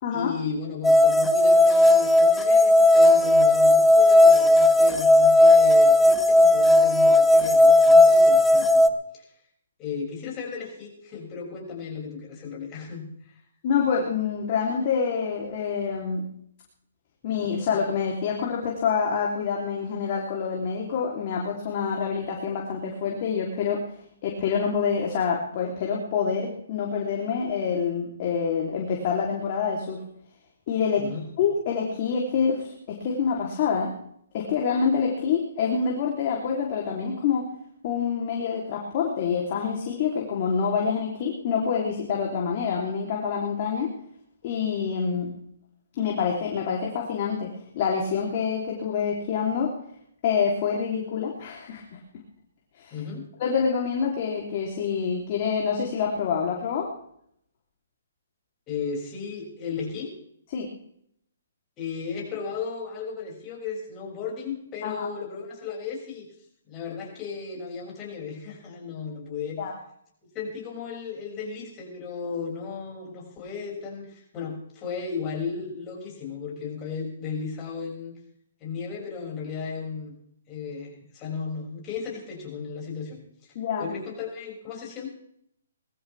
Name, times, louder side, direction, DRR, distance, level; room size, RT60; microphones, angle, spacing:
voice 1, 0.1-9.3 9.8-13.4 31.0-31.2 52.9-53.3 58.7-60.1 61.8-66.3 66.6-69.6 70.3-78.1 78.6-80.1 80.5-83.2 83.8-85.1, left 5 dB, 20° left, -2 dB, 6.4 m, -35 dB
sound 1, 0.8-8.9, left 1 dB, 5° left, 0.8 m, -16 dB
voice 2, 13.6-16.3 17.2-23.8 24.2-30.0 30.7-31.1 31.4-33.9 34.3-37.5 37.8-43.9 44.4-45.3 46.0-49.7 50.2-52.0 52.8-52.9 53.4-56.9 60.5-60.7 64.8-65.1 69.6-69.7 83.5-83.9, left 6 dB, 40° left, -1 dB, 3.3 m, -26 dB
20.5 x 15.0 x 3.5 m, 0.69 s
hypercardioid pair, 150°, 0 cm